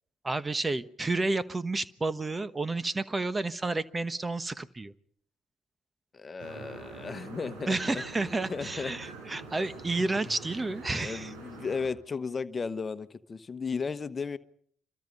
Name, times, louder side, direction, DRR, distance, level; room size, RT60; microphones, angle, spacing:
voice 1, 0.2-4.9 7.7-11.3, right 3 dB, 25° right, 15 dB, 1.2 m, -31 dB
voice 2, 6.1-8.0 8.5-9.1 10.9-14.4, left 5 dB, 35° left, 12 dB, 1.2 m, -35 dB
sound 1, 6.4-11.9, right 3 dB, 75° right, 5.8 m, -45 dB
26.0 x 24.5 x 5.4 m, 0.65 s
hypercardioid pair, 45°, 0 cm